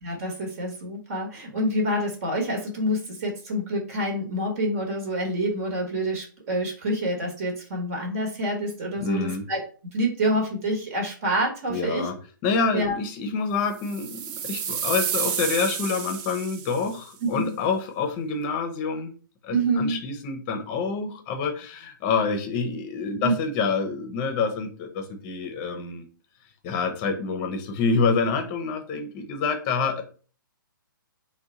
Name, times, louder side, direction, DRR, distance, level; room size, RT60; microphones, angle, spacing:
voice 1, 0.0-9.6 9.9-12.1 12.7-12.9 17.3-17.5 19.5-20.0 23.2-23.3, right 1 dB, 40° right, 1 dB, 1.2 m, -27 dB
voice 2, 9.0-9.4 11.7-12.2 12.4-19.1 19.4-26.1 26.6-30.0, left 4 dB, 30° left, 6 dB, 0.7 m, -27 dB
sound 1, 13.8-17.0, right 8 dB, 25° right, 0.4 m, -30 dB
3.5 x 2.2 x 4.0 m, 0.39 s
figure-of-eight pair, 130°, 11 cm